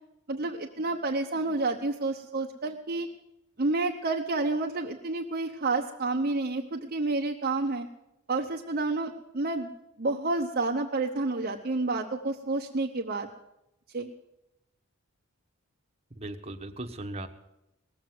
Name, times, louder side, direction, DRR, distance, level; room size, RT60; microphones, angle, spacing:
voice 1, 0.3-3.1 3.6-7.9 8.3-9.7 10.0-13.3 13.9-14.1, right 3 dB, 45° right, 1 dB, 0.9 m, -29 dB
voice 2, 16.1-17.3, right 1 dB, 30° right, 4 dB, 1.2 m, -38 dB
18.5 x 7.6 x 9.5 m, 0.87 s
head